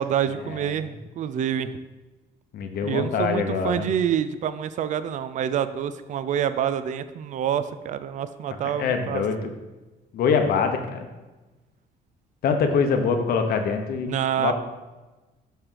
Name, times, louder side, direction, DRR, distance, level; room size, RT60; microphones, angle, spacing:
voice 1, 0.0-1.7 2.8-9.2 14.1-14.5, right 9 dB, 45° right, 12 dB, 0.4 m, -27 dB
voice 2, 2.5-3.8 8.8-9.5 10.1-11.1 12.4-14.5, left 5 dB, 65° left, 6 dB, 0.9 m, -24 dB
7.2 x 3.4 x 5.6 m, 1.1 s
cardioid pair, 110°, 17 cm